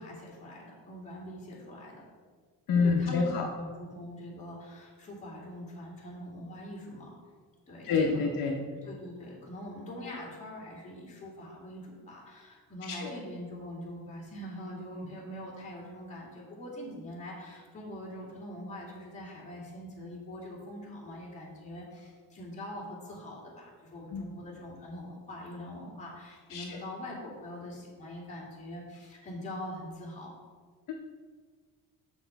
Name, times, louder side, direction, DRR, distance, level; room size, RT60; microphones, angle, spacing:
voice 1, 0.0-2.0 2.8-7.1 7.7-8.3 8.7-30.3, left 1 dB, 20° left, -5 dB, 2.2 m, -43 dB
voice 2, 2.7-3.5 7.8-8.6 13.0-13.1 24.1-24.2 26.5-26.8, left 4 dB, 60° left, 1 dB, 0.8 m, -27 dB
7.0 x 6.1 x 4.6 m, 1.5 s
cardioid pair, 160°, 37 cm